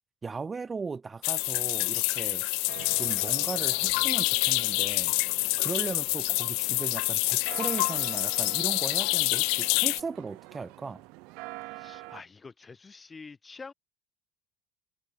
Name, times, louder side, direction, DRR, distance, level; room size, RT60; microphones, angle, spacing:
voice 1, 0.2-2.4 3.0-5.1 5.6-11.0, right 4 dB, 20° right, 1.3 m, -37 dB
sound 1, 1.2-10.0, left 34 dB, 80° left, 0.4 m, -27 dB
sound 2, 2.7-12.2, right 27 dB, 75° right, 1.1 m, -46 dB
voice 2, 11.7-13.7, left 4 dB, 20° left, 2.7 m, -47 dB
cardioid pair, 125°, 0 cm